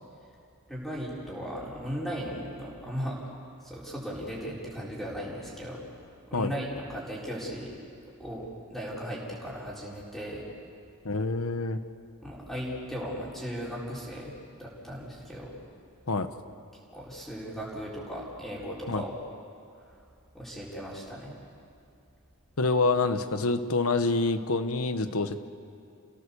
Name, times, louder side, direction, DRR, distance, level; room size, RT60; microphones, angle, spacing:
voice 1, 0.7-3.2 3.6-5.8 6.3-7.7 8.2-10.4 12.2-15.5 16.9-19.1 19.8-19.9 20.3-21.3, equal, ahead, -6 dB, 4.3 m, -37 dB
voice 2, 11.0-11.8 16.1-16.3 18.9-19.0 22.6-25.4, left 3 dB, 75° left, 10 dB, 1.2 m, -26 dB
29.5 x 17.0 x 7.0 m, 2.5 s
head